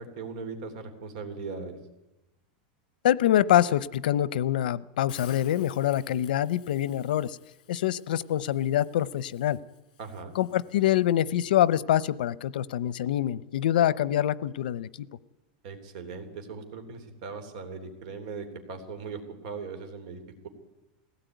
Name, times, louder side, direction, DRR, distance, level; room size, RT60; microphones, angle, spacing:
voice 1, 0.0-1.8 10.0-10.3 15.6-20.5, right 4 dB, 50° right, 7 dB, 3.3 m, -39 dB
voice 2, 3.0-7.4 7.7-9.6 10.3-15.1, left 12 dB, 90° left, 20 dB, 0.7 m, -25 dB
Hiss, 5.1-11.2, left 10 dB, 60° left, 3.1 m, -54 dB
20.5 x 17.0 x 9.3 m, 1.0 s
supercardioid pair, 180°, 5 cm